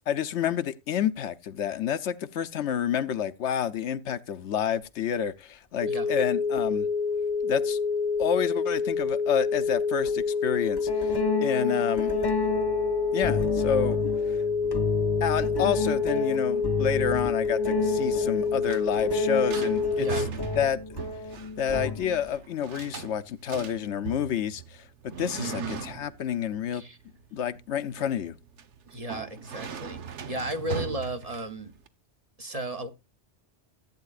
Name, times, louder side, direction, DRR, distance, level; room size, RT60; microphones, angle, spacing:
voice 1, 0.1-6.9 7.4-7.8 8.2-11.1 11.4-12.1 13.1-14.0 14.3-14.4 15.2-20.2 20.6-20.8 21.6-24.8 25.2-26.8 27.3-28.3, left 8 dB, 75° left, 1.0 m, -29 dB
sound 1, 5.8-20.3, left 5 dB, 45° left, 0.9 m, -27 dB
sound 2, 6.6-6.7 8.2-8.3 10.0-10.2 10.8-22.3, left 2 dB, 25° left, 0.6 m, -32 dB
sound 3, 18.2-31.9, right 7 dB, 80° right, 1.3 m, -40 dB
voice 2, 20.0-20.3 25.4-25.8 26.7-27.0 28.9-31.7 32.4-32.9, right 1 dB, 35° right, 1.0 m, -34 dB
15.0 x 8.7 x 2.4 m
omnidirectional pair, 1.2 m